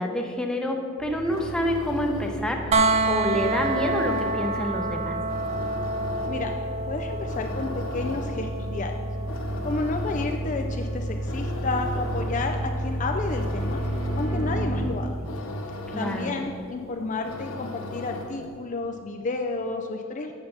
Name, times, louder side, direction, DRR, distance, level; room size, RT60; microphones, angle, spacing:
voice 1, 0.0-5.2 15.9-16.3, equal, 5° left, 1 dB, 0.7 m, -28 dB
sound 1, 1.0-14.9, right 1 dB, 75° right, 2.0 m, -32 dB
sound 2, 1.1-18.6, left 1 dB, 85° left, 0.9 m, -38 dB
sound 3, 2.7-14.5 16.5-16.6, right 2 dB, 30° right, 0.3 m, -30 dB
voice 2, 6.9-8.9 9.6-13.8 14.2-15.2 16.0-20.3, left 3 dB, 35° left, 4 dB, 0.4 m, -31 dB
7.8 x 6.7 x 5.5 m, 2.3 s
head